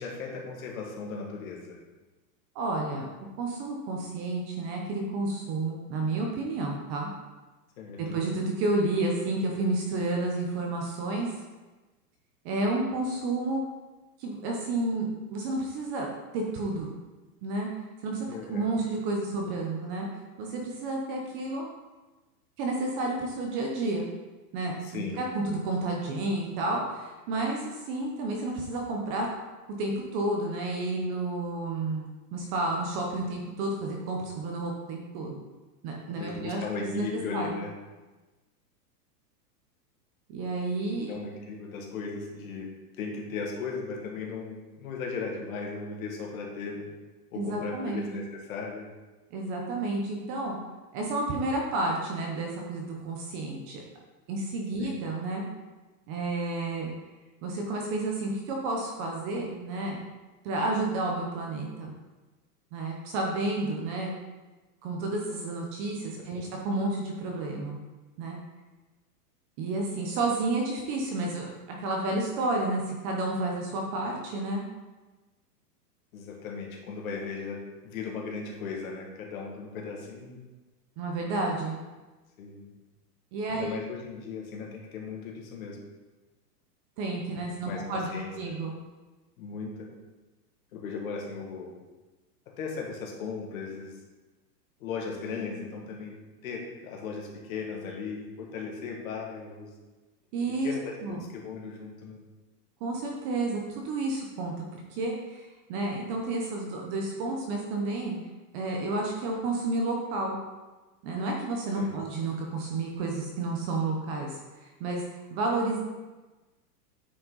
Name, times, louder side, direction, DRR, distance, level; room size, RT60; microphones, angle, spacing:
voice 1, 0.0-1.8 7.8-8.2 18.3-18.7 24.8-25.3 36.2-37.7 41.1-42.7 43.0-46.9 47.3-48.9 54.8-55.0 66.2-66.5 76.1-80.4 82.4-82.7 83.5-85.8 87.3-88.3 89.4-89.9 90.7-91.8 92.5-94.0 94.8-96.1 96.4-99.7 100.6-102.2 111.7-111.9, left 5 dB, 55° left, 0 dB, 2.0 m, -37 dB
voice 2, 2.5-3.1 3.4-7.1 8.0-11.3 12.4-13.6 14.2-16.1 16.3-17.0 17.4-17.7 18.0-20.1 20.4-21.7 22.6-24.1 24.5-29.3 29.8-35.4 35.8-37.0 37.3-37.6 40.3-41.1 47.3-48.1 49.3-50.6 50.9-53.8 54.3-55.4 56.1-56.9 57.4-60.0 60.4-61.9 62.7-64.2 64.8-67.8 68.2-68.4 69.6-71.5 71.8-74.6 81.0-81.8 83.3-83.7 87.0-88.8 100.3-100.7 101.0-101.2 102.8-108.2 108.5-110.4 111.0-115.0 115.3-115.8, right 2 dB, 25° right, 0 dB, 0.7 m, -31 dB
9.3 x 5.5 x 3.9 m, 1.2 s
supercardioid pair, 160°, 49 cm